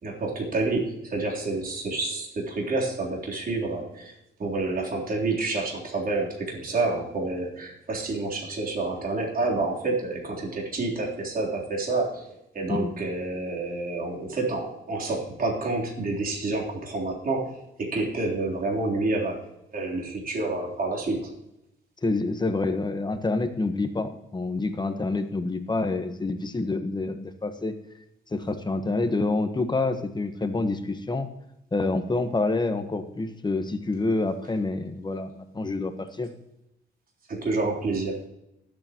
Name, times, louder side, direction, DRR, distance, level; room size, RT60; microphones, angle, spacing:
voice 1, 0.0-4.1 4.4-21.3 37.3-38.2, right 3 dB, 45° right, -2 dB, 3.6 m, -29 dB
voice 2, 22.0-27.7 28.3-31.3 31.7-36.3, left 3 dB, 20° left, 7 dB, 1.3 m, -27 dB
20.0 x 8.8 x 3.0 m, 0.86 s
cardioid pair, 90°, 20 cm